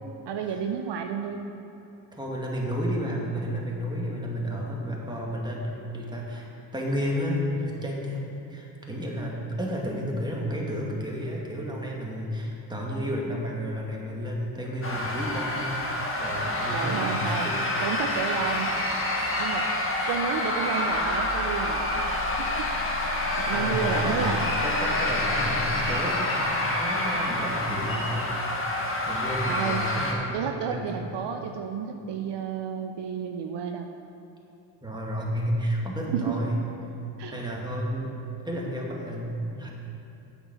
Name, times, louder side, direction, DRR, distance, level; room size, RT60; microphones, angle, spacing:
voice 1, 0.3-1.5 16.7-17.5 17.8-18.8 19.4-19.7 20.1-22.0 22.4-22.7 23.4-24.4 29.5-29.8 30.3-33.9 36.1-36.4 37.2-37.3, right 7 dB, 60° right, 5 dB, 0.7 m, -31 dB
voice 2, 2.1-6.5 6.7-18.9 19.1-20.2 23.5-28.7 29.1-30.4 30.6-31.1 34.8-36.6 37.3-38.1 38.4-39.7, equal, 10° right, -3 dB, 2.2 m, -32 dB
sound 1, 14.8-30.1, left 1 dB, 25° left, 1.8 m, -28 dB
sound 2, 20.9-25.9, left 6 dB, 35° right, 1.7 m, -38 dB
8.0 x 7.1 x 6.2 m, 2.8 s
supercardioid pair, 65°, 47 cm